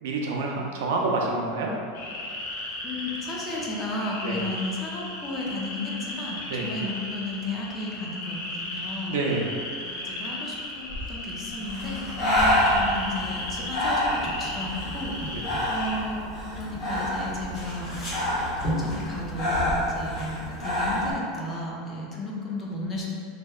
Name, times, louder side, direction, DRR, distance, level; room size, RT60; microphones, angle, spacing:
voice 1, 0.0-1.7 4.2-4.4 6.5-6.7 9.1-9.5 15.3-15.4, right 3 dB, 80° right, -1 dB, 0.4 m, -27 dB
sound 1, 1.9-16.0, left 1 dB, 90° left, 0.5 m, -36 dB
voice 2, 2.8-9.1 9.8-16.2 16.5-18.3 18.6-23.1, left 2 dB, 20° left, -3 dB, 0.3 m, -34 dB
Breathing, 11.6-21.1, left 1 dB, 50° left, 0.8 m, -27 dB
2.6 x 2.0 x 2.3 m, 2.3 s
supercardioid pair, 160°, 0 cm